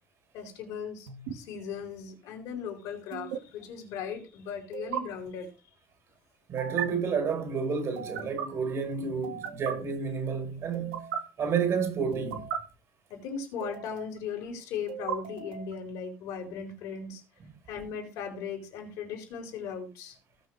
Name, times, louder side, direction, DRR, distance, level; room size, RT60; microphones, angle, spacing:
voice 1, 0.3-5.5 13.1-17.2 17.7-20.2, left 6 dB, 70° left, 4.7 m, -38 dB
sound 1, 1.1-1.3 3.1-3.4 4.7-5.0 6.6-6.9 8.0-8.5 9.2-9.7 10.7-11.2 12.1-12.6 13.6-14.2 14.9-15.7, right 9 dB, 80° right, 1.9 m, -36 dB
voice 2, 6.5-11.1 11.4-12.5, right 6 dB, 55° right, 4.8 m, -30 dB
18.5 x 6.3 x 3.4 m
hypercardioid pair, 60°, 6 cm